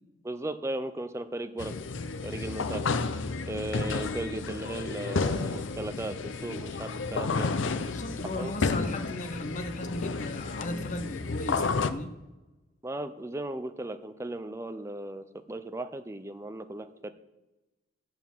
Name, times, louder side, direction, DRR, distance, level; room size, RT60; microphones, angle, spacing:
voice 1, 0.2-1.7 2.2-2.8 3.5-7.5 8.3-8.5 12.8-17.1, right 1 dB, 15° right, 0.5 m, -36 dB
sound 1, 1.6-11.9, left 4 dB, 85° left, 0.6 m, -31 dB
voice 2, 7.8-12.2, left 1 dB, 40° left, 0.9 m, -36 dB
8.0 x 7.1 x 7.3 m
head